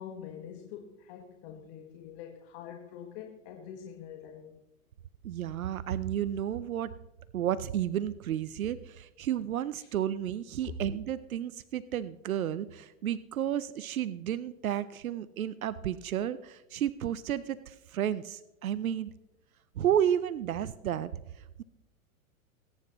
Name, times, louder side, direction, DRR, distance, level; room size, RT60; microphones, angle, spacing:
voice 1, 0.0-4.6 9.8-9.9, left 8 dB, 45° left, 3 dB, 1.6 m, -45 dB
voice 2, 5.2-6.9 7.3-19.1 19.8-21.6, right 10 dB, 85° right, 17 dB, 0.6 m, -32 dB
20.5 x 9.8 x 3.1 m, 0.90 s
hypercardioid pair, 115°, 41 cm